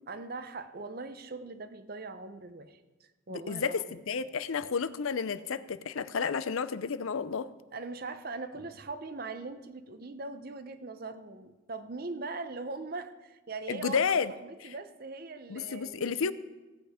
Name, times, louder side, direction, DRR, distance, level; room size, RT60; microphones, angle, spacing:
voice 1, 0.1-4.0 7.7-14.0 14.4-16.3, right 3 dB, 45° right, 11 dB, 0.7 m, -41 dB
voice 2, 3.3-7.5 13.7-14.3 15.5-16.3, left 6 dB, 85° left, 14 dB, 0.6 m, -31 dB
16.0 x 8.5 x 5.0 m, 1.2 s
head